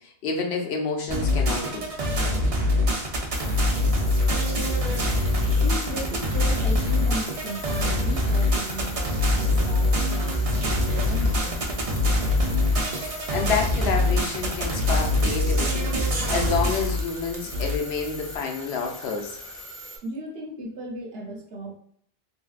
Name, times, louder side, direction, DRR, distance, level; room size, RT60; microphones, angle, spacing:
voice 1, 0.0-1.9 13.0-19.4, left 4 dB, 75° left, 2 dB, 0.9 m, -29 dB
sound 1, 1.1-17.8, left 1 dB, 45° right, 0.5 m, -24 dB
sound 2, 3.3-18.4, left 1 dB, 45° left, 0.5 m, -42 dB
sound 3, 4.0-20.0, left 2 dB, 30° left, 0.9 m, -42 dB
voice 2, 5.5-11.7 20.0-21.7, right 1 dB, 70° right, 2 dB, 0.9 m, -36 dB
3.3 x 2.7 x 2.4 m, 0.65 s
omnidirectional pair, 1.1 m